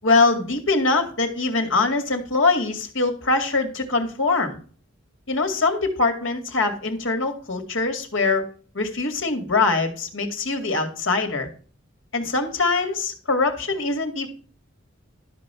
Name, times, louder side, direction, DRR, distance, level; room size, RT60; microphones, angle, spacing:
voice 1, 0.0-4.6 5.3-8.5 8.7-11.5 12.1-14.3, left 3 dB, 75° left, 5 dB, 2.2 m, -23 dB
12.5 x 5.5 x 5.6 m, 0.40 s
head